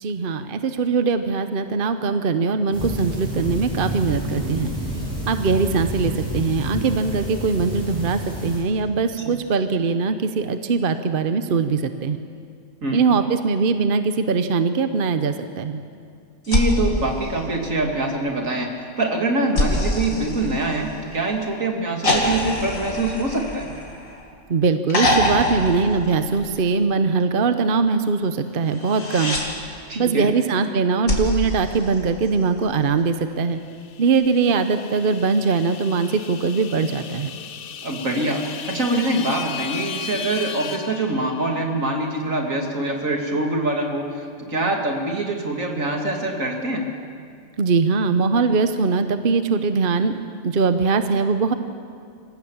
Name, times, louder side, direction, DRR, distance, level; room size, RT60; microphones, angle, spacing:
voice 1, 0.0-4.7 5.3-12.2 12.9-15.8 24.5-29.4 29.9-33.6 34.0-37.3 47.6-50.1 50.4-51.5, right 4 dB, 45° right, 9 dB, 0.9 m, -21 dB
sound 1, 2.7-8.6, right 1 dB, 25° right, 6.9 m, -29 dB
voice 2, 12.8-13.2 16.5-18.7 19.0-23.7 29.9-30.3 37.8-46.8, right 2 dB, 75° right, 1 dB, 2.8 m, -24 dB
sound 2, 16.5-18.0 19.6-21.2 22.0-24.3 24.9-26.7 28.7-29.5 31.1-32.6 34.1-34.2, left 1 dB, 80° left, 2.9 m, -25 dB
sound 3, 33.7-41.7, left 7 dB, 50° left, 0.8 m, -36 dB
27.0 x 16.0 x 7.3 m, 2.3 s
omnidirectional pair, 1.4 m